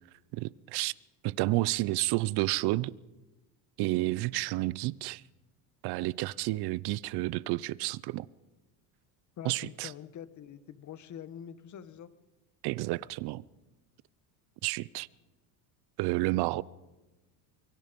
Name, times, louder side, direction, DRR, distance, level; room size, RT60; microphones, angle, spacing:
voice 1, 0.3-0.9 1.2-2.9 3.8-5.2 5.8-8.3 9.4-9.9 12.6-13.4 14.6-15.1 16.0-16.6, right 19 dB, 55° right, 0.8 m, -30 dB
voice 2, 9.4-12.1, left 9 dB, 40° left, 1.5 m, -45 dB
24.0 x 23.5 x 5.3 m
supercardioid pair, 115°, 46 cm